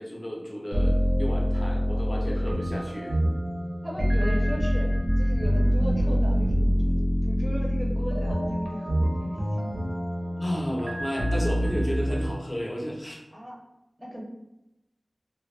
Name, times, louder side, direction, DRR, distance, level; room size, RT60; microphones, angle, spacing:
voice 1, 0.0-3.2 10.4-13.2, equal, 30° left, -3 dB, 0.6 m, -32 dB
sound 1, 0.7-12.3, equal, 75° right, 0.5 m, -25 dB
voice 2, 3.8-9.7 13.3-13.6 14.0-14.2, equal, 15° right, -3 dB, 0.6 m, -37 dB
2.2 x 2.0 x 3.1 m, 0.96 s
wide cardioid pair, 65°, 0 cm